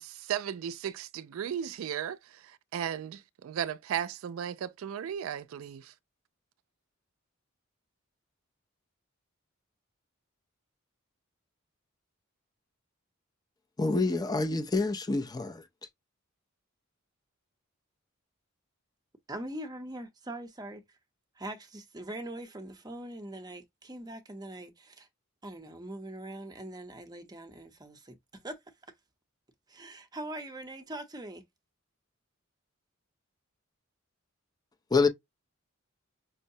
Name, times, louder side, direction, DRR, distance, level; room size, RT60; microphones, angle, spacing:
voice 1, 0.0-5.9, right 9 dB, 75° right, 0.3 m, -36 dB
voice 2, 13.8-15.6 34.9-35.1, left 3 dB, 20° left, 0.4 m, -27 dB
voice 3, 19.3-20.8 21.4-25.1 25.4-28.6 29.7-31.4, right 1 dB, 20° right, 0.7 m, -42 dB
5.4 x 2.1 x 2.7 m
head